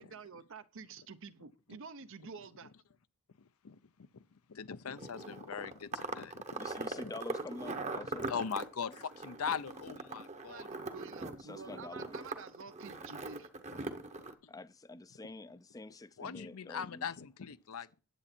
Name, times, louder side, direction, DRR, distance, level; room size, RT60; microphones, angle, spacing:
voice 1, 0.0-2.7 10.4-13.5, right 5 dB, 60° right, 0.7 m, -49 dB
voice 2, 3.4-4.2 4.5-6.9 7.8-7.9 8.1-10.7 14.4-14.5 16.2-18.0, left 6 dB, 75° left, 0.6 m, -41 dB
sound 1, 5.0-14.3, right 3 dB, 30° right, 0.9 m, -41 dB
voice 3, 6.5-8.3 8.8-9.0 11.4-12.2 14.5-17.1, left 2 dB, 15° left, 0.4 m, -47 dB
10.0 x 8.0 x 4.4 m
head